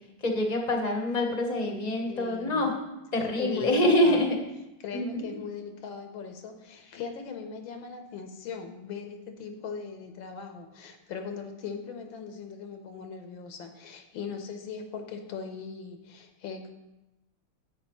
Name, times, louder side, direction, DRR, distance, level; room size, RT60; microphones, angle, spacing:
voice 1, 0.2-2.8 3.1-4.4 4.9-5.4, left 1 dB, 25° left, 2 dB, 0.9 m, -26 dB
voice 2, 2.1-2.7 3.4-4.3 4.8-16.7, left 5 dB, 85° left, 6 dB, 1.7 m, -39 dB
11.0 x 8.2 x 3.1 m, 0.97 s
omnidirectional pair, 2.1 m